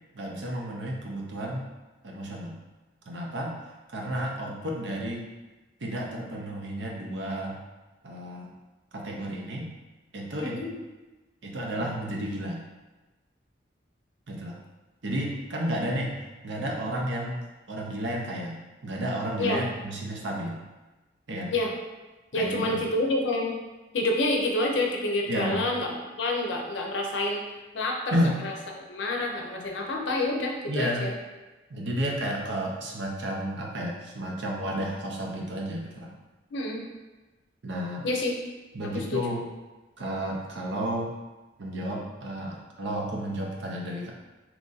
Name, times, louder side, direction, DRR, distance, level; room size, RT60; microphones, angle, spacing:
voice 1, 0.1-1.7 2.0-2.5 3.1-3.5 3.9-5.2 5.8-7.6 8.0-8.5 8.9-9.7 10.1-10.6 11.4-12.6 14.3-14.6 15.0-16.2 16.4-20.6 21.3-21.5 22.3-22.8 25.3-25.6 28.1-28.4 30.7-31.1 31.7-36.1 37.6-38.1 38.7-39.5 40.0-41.1 41.6-44.1, right 1 dB, 70° right, -1 dB, 0.6 m, -32 dB
voice 2, 22.3-23.6 23.9-25.9 26.2-27.4 27.7-28.5 28.9-31.1 36.5-36.8 38.0-38.3 38.9-39.2, left 2 dB, 70° left, 1 dB, 0.6 m, -28 dB
3.0 x 2.5 x 3.8 m, 1.2 s
head